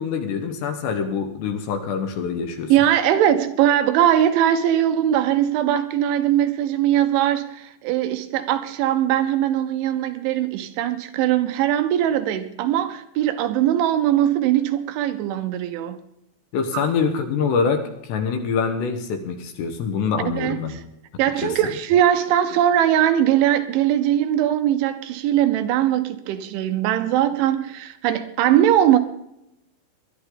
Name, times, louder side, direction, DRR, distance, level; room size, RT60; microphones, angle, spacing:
voice 1, 0.0-2.7 16.5-20.7 21.4-21.5, left 5 dB, 70° left, 3.0 m, -25 dB
voice 2, 2.7-16.0 16.7-16.8 20.4-20.8 21.2-29.0, right 11 dB, 80° right, 3.0 m, -20 dB
20.5 x 11.5 x 3.9 m
omnidirectional pair, 5.7 m